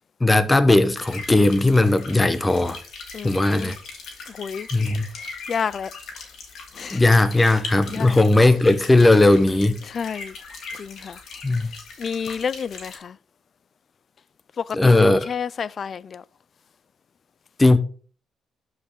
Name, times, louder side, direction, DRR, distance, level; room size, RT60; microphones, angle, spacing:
voice 1, 0.2-2.8 3.2-3.8 4.7-5.1 6.9-9.8 11.4-11.7 14.7-15.3 17.6-17.8, left 2 dB, 15° left, 1.0 m, -17 dB
sound 1, 0.9-13.0, left 4 dB, 70° left, 2.6 m, -40 dB
voice 2, 3.1-3.7 4.3-4.7 5.5-5.9 6.7-7.0 7.9-8.2 9.9-10.3 10.7-11.2 12.0-13.2 14.6-16.2, left 6 dB, 50° left, 0.4 m, -30 dB
12.0 x 5.1 x 3.8 m
cardioid pair, 90°, 0 cm